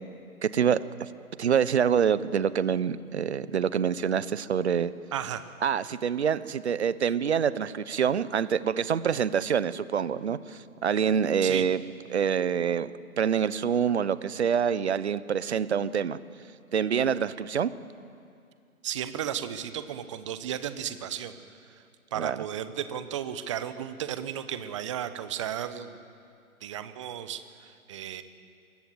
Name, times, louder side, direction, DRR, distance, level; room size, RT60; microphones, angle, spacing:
voice 1, 0.4-1.1 1.4-4.9 5.6-11.8 12.1-12.9 13.2-16.2 16.7-17.7 22.1-22.4, right 7 dB, 50° right, 17 dB, 1.1 m, -26 dB
voice 2, 5.1-5.4 11.4-11.6 18.8-21.4 21.7-21.8 22.1-26.0 26.6-28.2, right 10 dB, 20° right, 12 dB, 1.0 m, -34 dB
28.0 x 22.5 x 8.0 m, 2.4 s
figure-of-eight pair, 145°, 44 cm